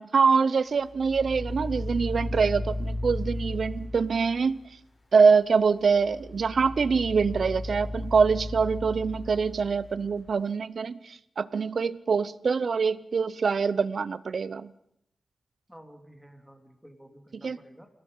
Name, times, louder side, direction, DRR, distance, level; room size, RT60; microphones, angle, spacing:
voice 1, 0.0-4.6 5.1-14.7 17.4-17.6, right 5 dB, 60° right, 17 dB, 0.8 m, -24 dB
sound 1, 0.9-4.6 5.9-10.3, left 1 dB, 35° left, 4.3 m, -35 dB
voice 2, 15.7-17.9, equal, ahead, 5 dB, 2.8 m, -51 dB
29.0 x 17.5 x 5.6 m, 0.77 s
wide cardioid pair, 140°, 0 cm